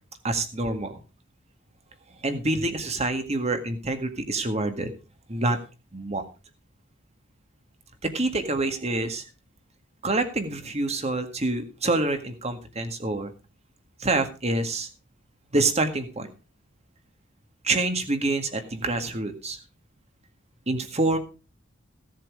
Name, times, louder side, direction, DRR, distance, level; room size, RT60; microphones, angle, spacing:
voice 1, 0.2-1.0 2.2-4.9 5.3-5.6 5.9-6.2 8.0-9.2 10.0-13.3 14.0-14.9 15.5-16.3 17.6-19.6 20.7-21.2, right 2 dB, 30° right, 7 dB, 1.9 m, -26 dB
16.5 x 7.5 x 4.9 m, 0.32 s
head